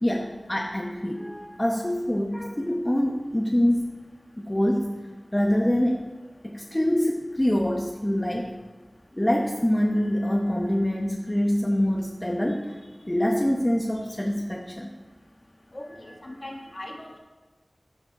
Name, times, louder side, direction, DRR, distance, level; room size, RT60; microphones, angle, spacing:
voice 1, 0.0-3.9 4.5-4.9 5.3-6.0 6.4-8.5 9.1-14.9 15.9-16.2, equal, 20° left, 0 dB, 0.9 m, -25 dB
voice 2, 15.7-17.2, left 1 dB, 40° left, 2 dB, 1.4 m, -40 dB
13.5 x 5.1 x 4.7 m, 1.3 s
wide cardioid pair, 50°, 0 cm